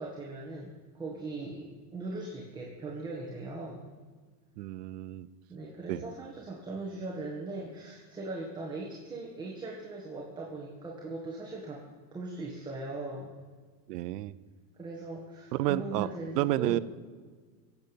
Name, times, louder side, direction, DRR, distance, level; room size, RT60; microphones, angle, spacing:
voice 1, 0.0-3.9 5.5-11.8 12.1-13.3 14.8-16.8, right 2 dB, 10° right, -3 dB, 1.8 m, -39 dB
voice 2, 4.6-5.3 5.9-6.0 13.9-14.4 15.5-16.8, right 15 dB, 90° right, 16 dB, 0.8 m, -30 dB
19.0 x 8.1 x 7.2 m, 1.5 s
supercardioid pair, 150°, 46 cm